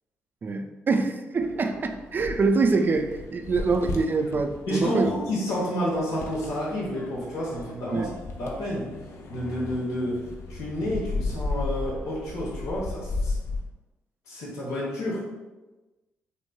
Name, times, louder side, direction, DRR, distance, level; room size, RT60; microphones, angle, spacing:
voice 1, 0.4-5.1 7.9-8.1, right 4 dB, 35° right, 6 dB, 0.3 m, -25 dB
sound 1, 1.4-13.6, left 3 dB, 55° left, 0.5 m, -35 dB
voice 2, 4.7-8.1 8.4-8.9 9.3-10.2 10.5-13.3 14.3-15.3, equal, 75° left, -5 dB, 0.9 m, -30 dB
3.1 x 2.6 x 2.3 m, 1.1 s
hypercardioid pair, 45°, 6 cm